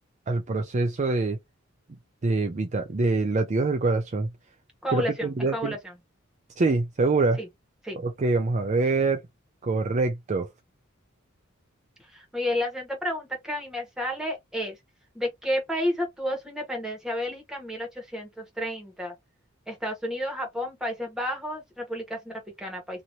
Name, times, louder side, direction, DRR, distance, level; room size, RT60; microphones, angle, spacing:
voice 1, 0.3-1.4 2.2-4.3 4.9-5.8 6.6-7.4 8.0-9.2 9.6-10.5, right 3 dB, 35° right, 0.5 m, -25 dB
voice 2, 4.8-5.9 7.4-7.5 7.8-8.0 12.1-14.8 15.1-19.1 19.7-23.0, left 1 dB, 5° right, 1.3 m, -31 dB
2.9 x 2.7 x 2.7 m
head